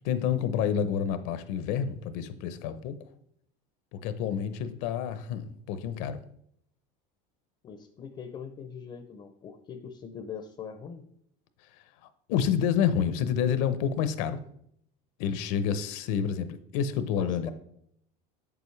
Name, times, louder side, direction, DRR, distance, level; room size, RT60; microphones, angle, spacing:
voice 1, 0.0-3.0 3.9-6.2 12.3-14.4 15.2-17.5, left 8 dB, 65° left, 0.7 m, -28 dB
voice 2, 7.6-11.0 17.1-17.5, left 7 dB, 25° left, 0.5 m, -42 dB
7.6 x 7.0 x 3.2 m
cardioid pair, 155°, 18 cm